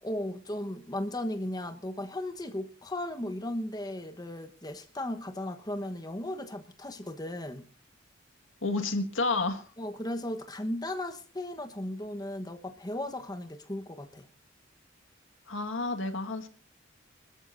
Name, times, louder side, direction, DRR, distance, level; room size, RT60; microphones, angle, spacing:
voice 1, 0.0-7.6 9.8-14.3, left 1 dB, 20° left, 1.2 m, -36 dB
voice 2, 8.6-9.7 15.5-16.5, left 3 dB, 70° left, 1.9 m, -30 dB
25.5 x 13.5 x 2.7 m
head